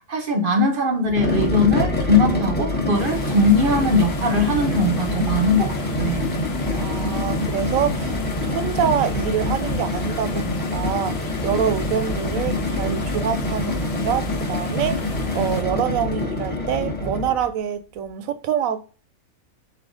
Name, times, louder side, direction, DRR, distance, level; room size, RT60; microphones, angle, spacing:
voice 1, 0.1-6.2, left 2 dB, 45° right, 0.8 m, -20 dB
sound 1, 1.0-17.5, left 2 dB, 10° left, 0.8 m, -25 dB
sound 2, 3.0-15.6, left 6 dB, 70° left, 1.1 m, -38 dB
voice 2, 6.7-8.2 8.4-18.8, right 9 dB, 75° right, 1.0 m, -26 dB
4.0 x 3.4 x 3.8 m
omnidirectional pair, 1.5 m